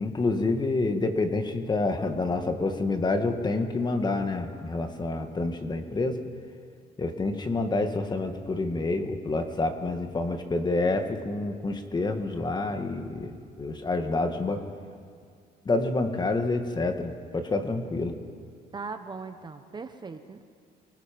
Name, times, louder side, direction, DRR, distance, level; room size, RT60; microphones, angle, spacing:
voice 1, 0.0-6.2 7.0-14.7 15.7-18.2, left 3 dB, 25° left, 6 dB, 1.9 m, -28 dB
voice 2, 18.7-20.4, right 4 dB, 25° right, 8 dB, 1.1 m, -39 dB
29.0 x 20.0 x 5.3 m, 2.3 s
cardioid pair, 110°, 17 cm